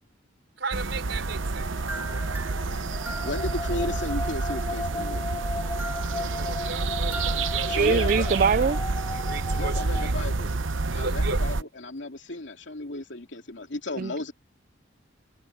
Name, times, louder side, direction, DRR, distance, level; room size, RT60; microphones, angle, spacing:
voice 1, 0.6-1.7 6.1-8.0 9.1-10.1 10.9-11.4, right 3 dB, 65° right, 5.7 m, -36 dB
sound 1, 0.7-11.6, right 3 dB, 85° right, 0.9 m, -28 dB
sound 2, 1.4-10.1, left 2 dB, 20° left, 2.7 m, -36 dB
sound 3, 1.9-3.8 5.6-8.6, right 2 dB, 10° right, 2.1 m, -41 dB
voice 2, 3.2-5.2 7.7-8.3 9.5-10.5 10.9-14.3, left 2 dB, 70° left, 2.6 m, -34 dB
voice 3, 7.7-8.8 14.0-14.1, right 5 dB, 45° right, 0.4 m, -22 dB
head